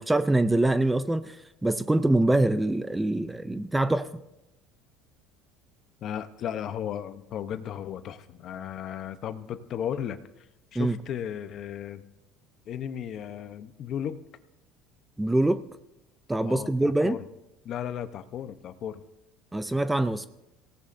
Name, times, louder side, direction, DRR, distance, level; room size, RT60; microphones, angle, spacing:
voice 1, 0.0-4.1 10.8-11.0 15.2-15.6 16.3-17.2 19.5-20.3, right 2 dB, 5° right, 12 dB, 0.4 m, -24 dB
voice 2, 6.0-10.2 10.7-12.0 12.7-14.2 16.4-17.3 17.6-19.0, left 9 dB, 45° left, 11 dB, 0.8 m, -35 dB
25.5 x 17.0 x 2.7 m, 0.90 s
cardioid pair, 145°, 0 cm